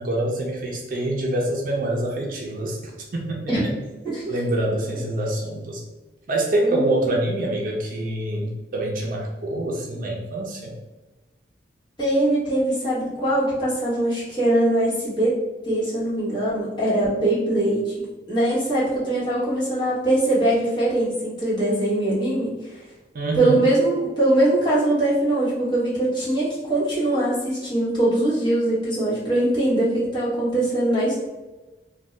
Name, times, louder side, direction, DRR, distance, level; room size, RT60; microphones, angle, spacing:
voice 1, 0.0-2.8 3.1-3.5 4.3-5.8 6.3-10.7 23.1-23.6, right 1 dB, 50° right, 0 dB, 0.5 m, -25 dB
voice 2, 4.0-4.4 6.6-7.1 12.0-15.3 15.6-22.5 23.3-31.1, right 1 dB, 25° left, -10 dB, 1.3 m, -22 dB
2.6 x 2.2 x 3.1 m, 1.1 s
head